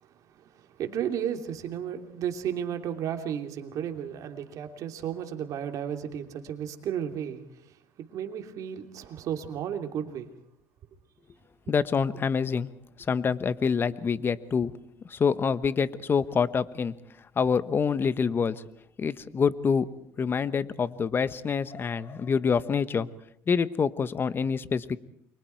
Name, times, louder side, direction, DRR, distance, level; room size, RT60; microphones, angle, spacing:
voice 1, 0.3-7.7 8.0-10.3 11.7-11.8, right 9 dB, 60° right, 5 dB, 3.0 m, -33 dB
voice 2, 11.7-12.7 13.1-14.7 15.1-16.9 17.4-18.6 19.0-19.9 20.2-23.1 23.5-25.0, left 6 dB, 35° left, 15 dB, 1.2 m, -26 dB
29.5 x 24.0 x 4.7 m, 0.66 s
cardioid pair, 100°, 7 cm